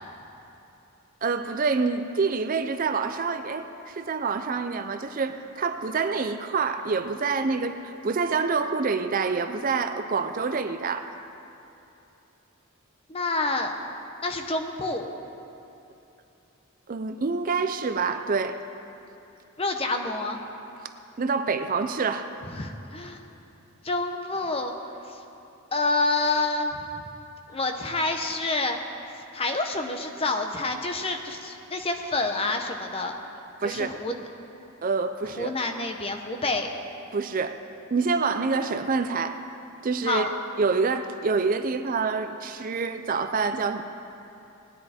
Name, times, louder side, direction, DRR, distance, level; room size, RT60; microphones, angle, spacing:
voice 1, 1.2-11.1 16.9-18.6 21.2-22.3 33.6-33.9 34.8-35.6 37.1-37.6 37.9-39.4 39.8-40.3 40.6-43.8, right 4 dB, 40° right, 9 dB, 0.4 m, -27 dB
voice 2, 13.1-13.7 14.2-15.1 19.6-20.4 22.5-23.2 23.8-24.7 25.1-25.2 25.7-26.9 27.5-28.8 29.3-33.1 33.6-34.3 35.4-36.7 40.0-40.3, left 2 dB, 25° left, 5 dB, 0.8 m, -28 dB
19.0 x 10.5 x 4.3 m, 2.9 s
head